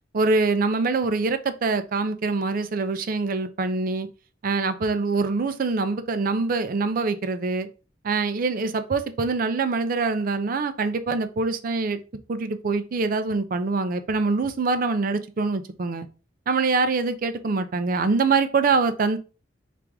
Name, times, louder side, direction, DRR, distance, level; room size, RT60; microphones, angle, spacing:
voice 1, 0.1-4.1 4.4-7.7 8.0-12.0 12.3-16.1 16.5-19.2, right 4 dB, 50° right, 0.5 m, -24 dB
4.6 x 2.5 x 3.4 m
head